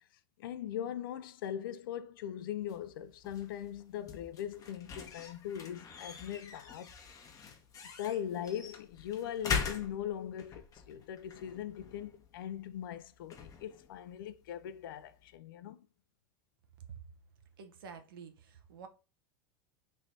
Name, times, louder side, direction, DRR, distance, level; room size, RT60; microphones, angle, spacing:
voice 1, 0.4-6.9 8.0-15.9, left 10 dB, 80° left, 0.4 m, -40 dB
sound 1, 2.6-15.4, left 6 dB, 30° left, 0.7 m, -43 dB
voice 2, 17.6-18.9, right 5 dB, 80° right, 0.7 m, -50 dB
3.2 x 2.6 x 4.3 m
hypercardioid pair, 100°, 12 cm